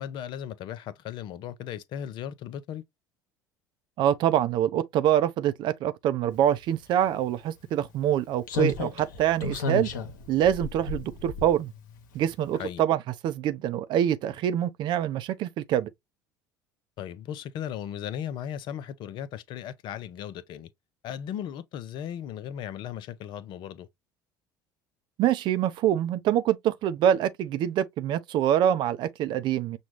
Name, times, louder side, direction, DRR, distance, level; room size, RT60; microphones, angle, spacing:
voice 1, 0.0-2.8 12.5-12.8 17.0-20.7 21.0-23.9, left 10 dB, 50° left, 0.6 m, -36 dB
voice 2, 4.0-9.9 10.3-11.7 12.1-15.9 25.2-29.8, right 10 dB, 50° right, 0.5 m, -25 dB
Slam, 7.1-7.2 8.5-12.0 12.3-12.4, left 3 dB, 70° left, 0.9 m, -32 dB
6.1 x 2.3 x 3.0 m
figure-of-eight pair, 65°, 10 cm